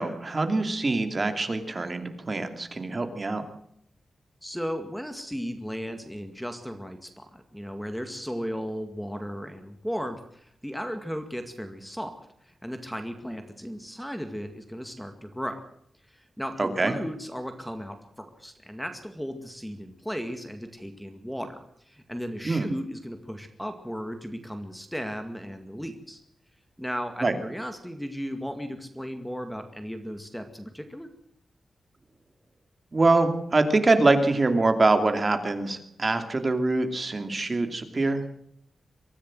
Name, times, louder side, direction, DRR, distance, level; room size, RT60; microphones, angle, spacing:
voice 1, 0.0-3.4 16.6-16.9 22.4-22.7 27.2-27.3 32.9-38.2, right 2 dB, 30° right, 7 dB, 2.7 m, -24 dB
voice 2, 4.4-15.6 16.1-26.2 26.8-31.1, equal, ahead, 7 dB, 2.1 m, -36 dB
24.0 x 15.5 x 7.7 m, 0.71 s
wide cardioid pair, 160°, 0 cm